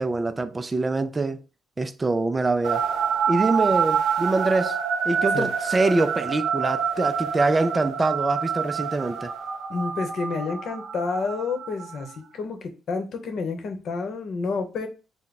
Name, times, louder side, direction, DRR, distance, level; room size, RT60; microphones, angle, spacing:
voice 1, 0.0-1.4 1.8-2.8 3.3-4.8 5.1-9.3, right 3 dB, 25° right, 0.4 m, -24 dB
sound 1, 2.6-12.1, right 7 dB, 85° right, 0.6 m, -27 dB
voice 2, 9.7-14.9, left 4 dB, 65° left, 0.9 m, -29 dB
3.4 x 2.1 x 4.0 m
cardioid pair, 90°, 0 cm